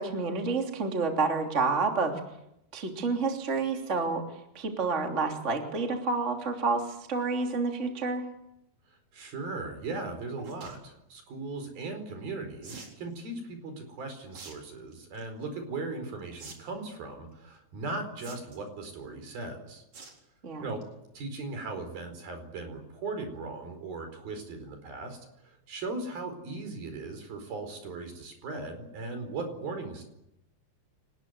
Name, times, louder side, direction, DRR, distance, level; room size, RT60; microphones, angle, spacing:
voice 1, 0.0-2.2 2.7-4.2 4.5-8.3 20.4-20.6, right 4 dB, 20° right, 2 dB, 2.7 m, -29 dB
voice 2, 9.1-19.8 20.6-20.8 21.1-30.0, right 3 dB, 60° right, 7 dB, 6.3 m, -38 dB
sound 1, 10.4-10.8 12.6-13.0 14.3-14.6 14.9-15.3 16.4-16.5 16.8-16.9 18.2-18.7 19.9-20.2 20.6-20.8 21.2-21.3 21.5-21.6, right 4 dB, 45° right, 5.2 m, -46 dB
28.5 x 20.0 x 8.1 m, 0.83 s
omnidirectional pair, 4.8 m